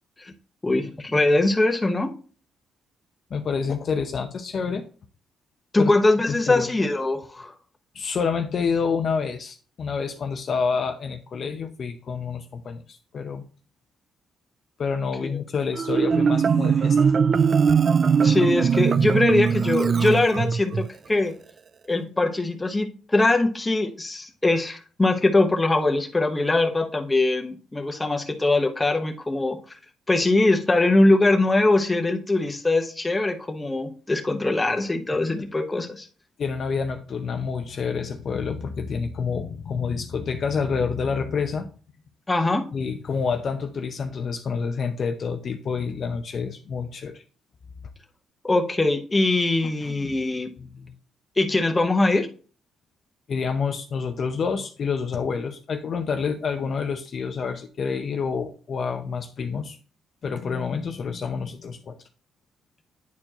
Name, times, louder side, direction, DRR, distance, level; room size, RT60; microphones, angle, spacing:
voice 1, 0.6-2.1 5.7-7.5 18.2-21.3 21.9-29.6 30.1-36.1 42.3-42.7 48.4-50.5 51.4-52.3, left 2 dB, 15° left, 4 dB, 1.0 m, -22 dB
voice 2, 3.3-4.9 5.8-5.9 6.3-6.7 7.9-13.4 14.8-17.1 36.4-41.7 42.7-47.2 49.8-50.1 50.6-50.9 53.3-59.8 60.2-61.9, left 5 dB, 50° left, 6 dB, 0.7 m, -28 dB
Marimba xylophone, 15.7-20.9, right 6 dB, 45° right, 0.3 m, -20 dB
9.4 x 4.4 x 2.9 m, 0.39 s
cardioid pair, 90°, 0 cm